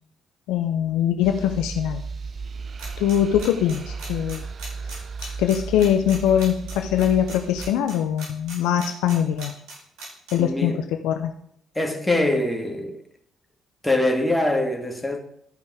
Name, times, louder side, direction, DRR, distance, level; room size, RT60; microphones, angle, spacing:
voice 1, 0.5-2.0 3.0-4.4 5.4-9.5 10.3-10.7 11.0-11.3, left 10 dB, 70° left, 0.6 m, -22 dB
sound 1, 1.2-7.7, right 4 dB, 45° right, 0.5 m, -35 dB
sound 2, 2.8-10.3, right 3 dB, 60° right, 4.7 m, -38 dB
voice 2, 10.4-10.8 11.8-13.0 13.8-15.2, left 1 dB, 10° left, 2.2 m, -23 dB
13.0 x 5.2 x 4.8 m
figure-of-eight pair, 45°, 0 cm